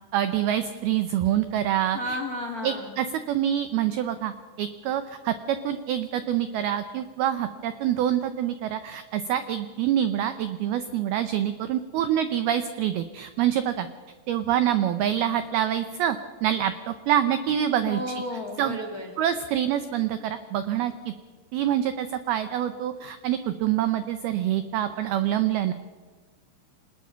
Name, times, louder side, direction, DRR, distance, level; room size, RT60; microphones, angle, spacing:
voice 1, 0.1-2.2 2.6-13.9 14.3-18.0 18.6-18.8 19.2-21.1 21.5-25.7, right 11 dB, 90° right, 10 dB, 2.2 m, -26 dB
voice 2, 1.9-2.9 17.8-19.1, left 1 dB, 60° left, 4 dB, 0.9 m, -33 dB
26.5 x 20.0 x 5.8 m, 1.4 s
omnidirectional pair, 5.6 m